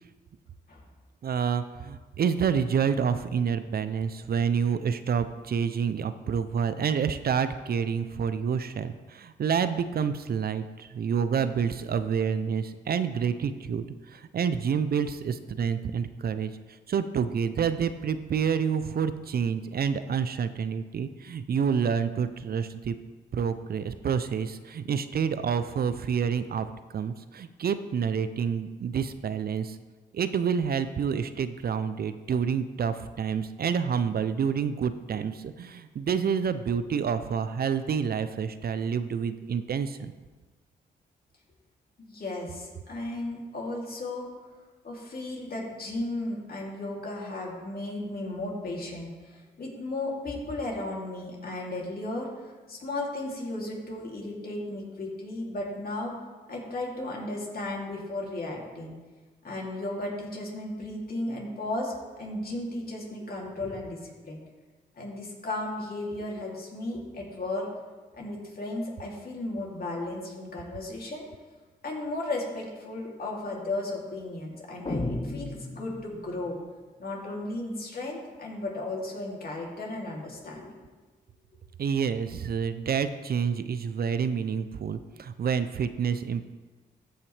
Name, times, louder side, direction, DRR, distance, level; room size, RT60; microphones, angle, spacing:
voice 1, 1.2-16.5 16.9-23.0 23.3-29.8 30.1-40.1 81.8-86.5, right 7 dB, 55° right, 12 dB, 0.5 m, -28 dB
voice 2, 42.0-44.3 44.8-56.1 56.5-58.9 59.4-64.4 65.0-67.7 68.1-71.2 71.8-76.6 77.0-80.7, left 2 dB, 50° left, -2 dB, 2.8 m, -35 dB
sound 1, 74.9-76.5, left 2 dB, 30° left, 1.1 m, -33 dB
14.0 x 5.6 x 3.3 m, 1.3 s
supercardioid pair, 50°, 19 cm